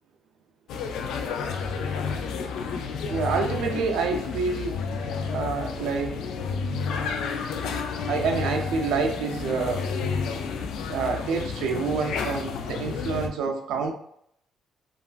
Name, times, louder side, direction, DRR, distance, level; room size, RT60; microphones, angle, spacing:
sound 1, 0.7-13.3, left 5 dB, 85° left, 0.3 m, -31 dB
voice 1, 3.1-4.8 5.3-6.2 8.1-9.9 10.9-13.9, right 5 dB, 90° right, 3 dB, 0.4 m, -27 dB
3.2 x 2.3 x 2.4 m, 0.71 s
cardioid pair, 90°, 0 cm